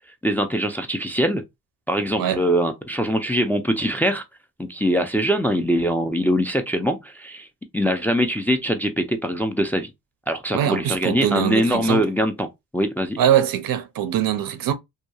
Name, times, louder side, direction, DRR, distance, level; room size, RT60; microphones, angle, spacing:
voice 1, 0.2-1.4 1.9-4.2 4.6-7.5 7.7-9.9 10.3-12.5 12.7-13.2, equal, 5° left, 0.4 m, -22 dB
voice 2, 10.5-12.1 13.2-14.7, right 10 dB, 60° right, 0.6 m, -22 dB
2.8 x 2.2 x 2.3 m
cardioid pair, 70°, 38 cm